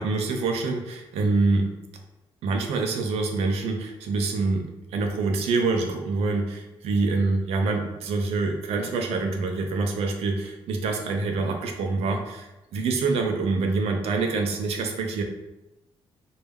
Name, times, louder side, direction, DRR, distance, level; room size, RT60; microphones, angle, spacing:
voice 1, 0.0-1.7 2.4-15.2, right 3 dB, 80° right, 4 dB, 0.4 m, -26 dB
2.2 x 2.0 x 3.4 m, 0.97 s
cardioid pair, 105°, 10 cm